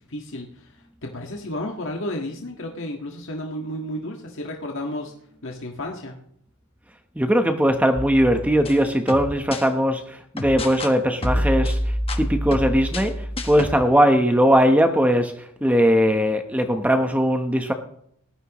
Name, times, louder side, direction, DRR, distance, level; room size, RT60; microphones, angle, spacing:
voice 1, 0.1-5.1 5.4-6.2, left 1 dB, 60° left, 1 dB, 1.7 m, -32 dB
voice 2, 7.1-17.7, equal, 5° right, 6 dB, 1.0 m, -20 dB
sound 1, 8.0-9.7 10.4-10.9 11.2-13.8, equal, 25° left, 1.3 m, -27 dB
19.0 x 13.5 x 3.1 m, 0.68 s
head